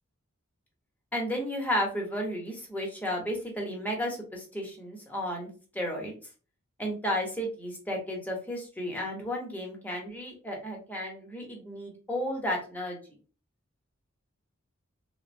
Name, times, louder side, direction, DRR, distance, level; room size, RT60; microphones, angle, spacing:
voice 1, 1.1-5.5 5.7-6.1 6.8-13.0, equal, 10° left, 0 dB, 0.8 m, -33 dB
3.4 x 2.1 x 2.6 m, 0.36 s
head